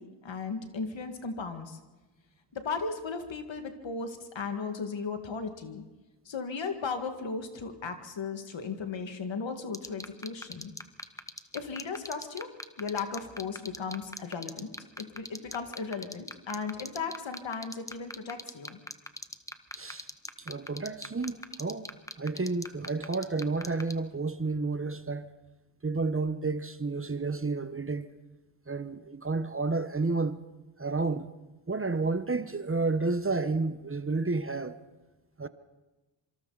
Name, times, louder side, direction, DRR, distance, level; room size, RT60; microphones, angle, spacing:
voice 1, 0.0-1.8 2.5-5.8 6.3-10.7 11.5-12.5 12.8-14.7 15.0-18.8, left 5 dB, 70° left, 2.1 m, -36 dB
sound 1, 9.7-23.9, left 1 dB, 5° left, 1.0 m, -38 dB
voice 2, 19.7-20.1 20.4-21.9 22.2-25.3 25.8-28.1 28.7-30.4 30.8-31.3 31.7-34.8 35.4-35.5, right 3 dB, 30° right, 1.0 m, -31 dB
26.0 x 25.0 x 4.1 m
cardioid pair, 55°, 47 cm